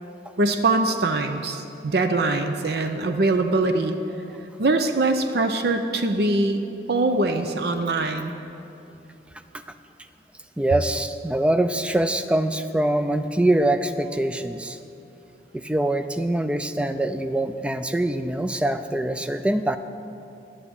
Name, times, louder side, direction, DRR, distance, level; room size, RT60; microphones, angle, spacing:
voice 1, 0.4-4.0 4.6-6.6 6.9-8.3, right 2 dB, 60° right, 7 dB, 0.5 m, -22 dB
voice 2, 10.6-14.8 15.5-19.8, right 1 dB, 5° right, 10 dB, 0.3 m, -24 dB
9.8 x 8.1 x 7.0 m, 2.8 s
head